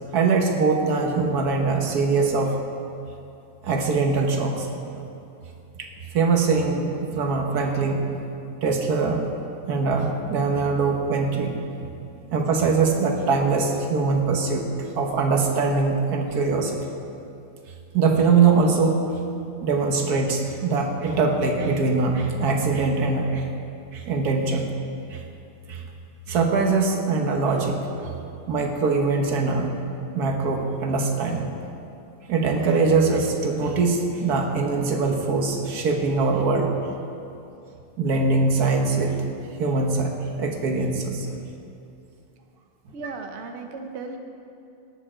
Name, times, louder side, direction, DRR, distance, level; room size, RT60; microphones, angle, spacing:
voice 1, 0.1-2.6 3.6-5.0 5.8-5.9 6.1-8.2 8.6-9.2 9.7-11.9 12.3-16.8 17.9-19.0 19.6-23.5 23.9-24.7 25.1-25.2 25.7-25.8 26.3-28.2 28.5-29.7 30.1-31.5 32.3-36.7 38.0-39.1 39.6-40.1 40.4-41.3, right 4 dB, 50° right, 2 dB, 1.5 m, -22 dB
voice 2, 42.9-44.2, right 4 dB, 90° right, 5 dB, 0.6 m, -35 dB
18.5 x 7.4 x 4.5 m, 2.7 s
omnidirectional pair, 2.3 m